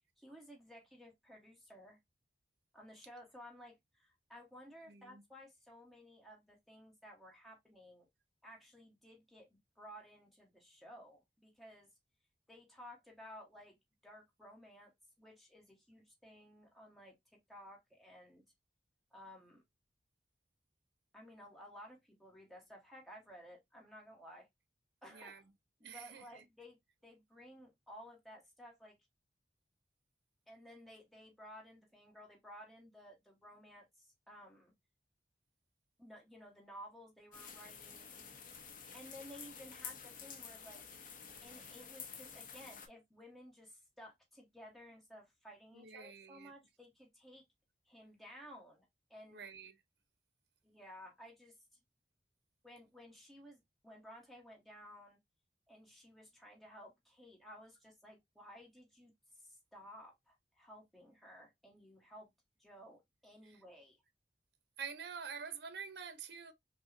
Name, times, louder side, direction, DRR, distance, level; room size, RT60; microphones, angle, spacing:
voice 1, 0.2-2.0 2.7-8.1 8.4-11.9 12.5-13.8 14.0-14.9 15.2-17.2 17.5-18.4 19.1-19.6 21.1-24.5 25.0-25.4 25.8-29.0 30.5-34.7 36.0-38.1 38.9-40.8 41.4-47.4 47.9-49.4 50.6-51.5 52.6-55.2 55.7-59.1 59.4-62.3 62.6-64.0, equal, ahead, 1.1 m, -56 dB
voice 2, 4.9-5.2 25.1-25.4 25.8-26.5 45.7-46.5 49.3-49.8 63.4-63.6 64.8-66.5, right 6 dB, 65° right, 0.6 m, -47 dB
sound 1, 37.3-42.9, left 6 dB, 50° left, 0.7 m, -50 dB
5.4 x 2.1 x 2.5 m
head